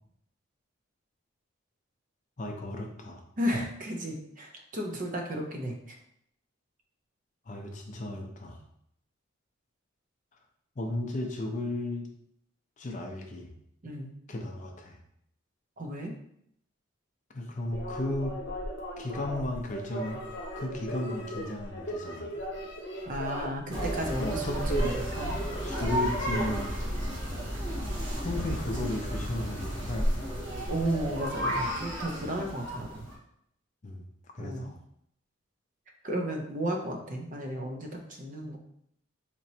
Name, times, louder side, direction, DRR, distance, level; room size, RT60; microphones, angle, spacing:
voice 1, 2.4-3.2 7.5-8.6 10.8-12.1 12.8-13.5 14.3-15.0 17.3-18.4 19.0-20.2 20.6-22.3 24.2-24.9 25.6-26.9 28.1-30.5 33.8-34.1 34.3-34.8, left 1 dB, 35° left, 2 dB, 0.5 m, -34 dB
voice 2, 3.4-6.0 13.8-14.1 15.8-16.1 23.1-25.3 30.7-33.1 34.4-34.7 36.0-38.6, right 1 dB, 40° right, 2 dB, 0.5 m, -34 dB
sound 1, 17.7-26.7, right 1 dB, 60° left, 0.8 m, -38 dB
sound 2, 23.7-33.1, equal, 60° right, 1.5 m, -32 dB
4.3 x 3.0 x 2.7 m, 0.72 s
head